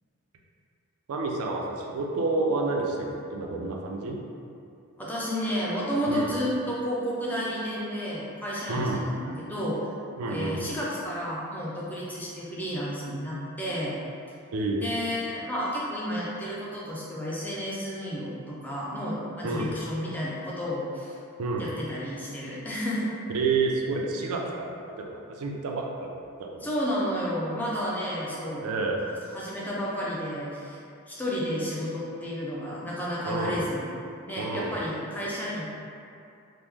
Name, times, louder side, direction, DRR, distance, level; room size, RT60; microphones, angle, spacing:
voice 1, 1.1-4.2 6.1-6.3 8.7-9.0 10.2-10.6 14.5-14.8 19.4-19.7 21.4-21.7 23.3-26.1 26.4-26.7 28.6-29.0 33.3-33.6 34.4-34.8, right 3 dB, 85° right, 0 dB, 0.4 m, -29 dB
voice 2, 5.0-9.8 10.3-13.9 14.8-21.2 21.6-23.1 26.6-28.7 29.3-30.8 31.1-33.9 34.3-35.7, equal, 10° left, -7 dB, 0.4 m, -31 dB
3.0 x 2.0 x 3.4 m, 2.6 s
head